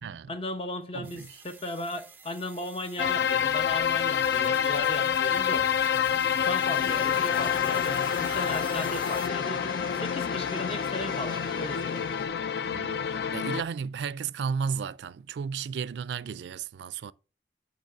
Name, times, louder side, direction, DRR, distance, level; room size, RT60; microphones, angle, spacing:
voice 1, 0.0-5.7 6.4-12.1, left 1 dB, 30° left, 0.8 m, -36 dB
voice 2, 0.9-1.3 12.6-17.1, right 6 dB, 75° right, 0.3 m, -34 dB
sound 1, 1.0-9.3, right 4 dB, 10° right, 0.4 m, -48 dB
sound 2, 3.0-13.6, left 8 dB, 65° left, 0.4 m, -27 dB
sound 3, 6.7-12.3, left 3 dB, 50° left, 2.5 m, -40 dB
9.1 x 3.0 x 5.5 m
head